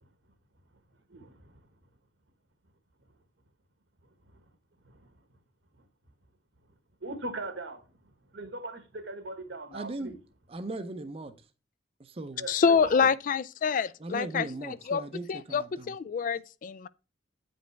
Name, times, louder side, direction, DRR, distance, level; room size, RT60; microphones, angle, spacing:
voice 1, 1.1-1.7 4.3-4.4 4.8-5.1 7.0-7.9 8.3-10.1 12.4-13.1, right 2 dB, 75° right, 1.3 m, -40 dB
voice 2, 9.7-10.1 10.5-11.4 12.0-12.5 14.0-16.0, right 2 dB, 30° right, 0.6 m, -38 dB
voice 3, 12.5-15.0 15.3-16.9, left 6 dB, 45° left, 0.3 m, -27 dB
8.9 x 5.2 x 3.3 m
head